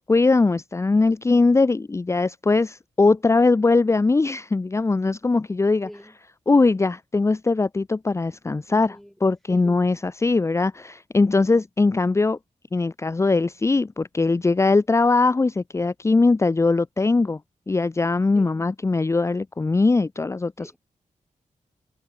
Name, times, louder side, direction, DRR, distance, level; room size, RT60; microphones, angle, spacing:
voice 1, 0.0-5.9 6.5-12.4 12.7-17.4 17.7-20.8, left 3 dB, 20° left, 0.9 m, -21 dB
voice 2, 5.8-6.1 8.7-9.1 9.5-9.6 11.4-11.5 18.3-18.6 20.6-20.8, equal, ahead, 5.8 m, -44 dB
wide cardioid pair, 175°, 14 cm